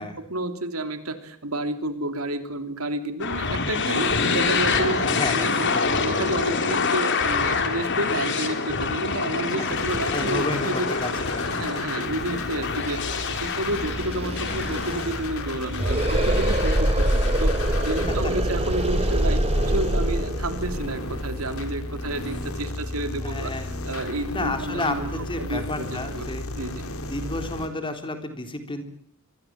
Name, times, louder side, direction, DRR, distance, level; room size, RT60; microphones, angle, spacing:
voice 1, 0.0-5.7 6.0-10.9 11.5-23.5 23.8-25.9 26.1-26.2 26.6-26.9, right 1 dB, 90° right, 8 dB, 3.3 m, -30 dB
sound 1, 3.2-18.1, left 4 dB, 60° left, 3.7 m, -27 dB
voice 2, 5.0-6.1 7.5-7.7 10.1-11.7 23.2-23.7 24.3-26.5 27.0-28.8, left 2 dB, 25° left, 6 dB, 3.8 m, -31 dB
sound 2, 9.7-27.7, left 2 dB, 75° left, 3.8 m, -34 dB
sound 3, 13.4-13.5 13.7-22.5, right 1 dB, 30° right, 2.5 m, -25 dB
25.0 x 23.5 x 7.7 m, 0.62 s
head